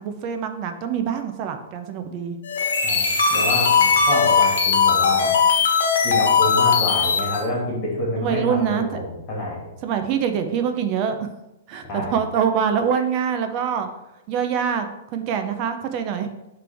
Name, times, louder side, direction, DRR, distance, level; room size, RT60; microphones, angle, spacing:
voice 1, 0.0-2.4 8.2-8.9 9.8-11.3 11.7-13.9 14.3-16.3, right 7 dB, 30° right, 7 dB, 0.7 m, -24 dB
sound 1, 2.4-7.5, left 6 dB, 85° left, 1.1 m, -19 dB
voice 2, 2.8-5.3 6.0-9.6 11.9-12.2, left 1 dB, 30° left, -4 dB, 2.2 m, -27 dB
9.9 x 3.4 x 3.5 m, 0.92 s
hypercardioid pair, 165°, 0 cm